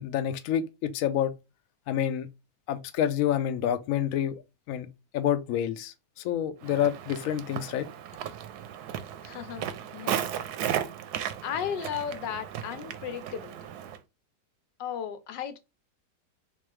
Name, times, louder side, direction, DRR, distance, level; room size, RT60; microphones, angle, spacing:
voice 1, 0.0-1.3 1.9-2.3 2.7-4.4 4.7-4.9 5.1-7.9, left 10 dB, 70° left, 0.8 m, -28 dB
Walk footsteps, 6.6-14.0, right 10 dB, 75° right, 1.0 m, -35 dB
voice 2, 9.2-10.3 11.4-13.7 14.8-15.6, left 8 dB, 85° left, 1.4 m, -35 dB
3.6 x 3.2 x 3.2 m
omnidirectional pair, 1.9 m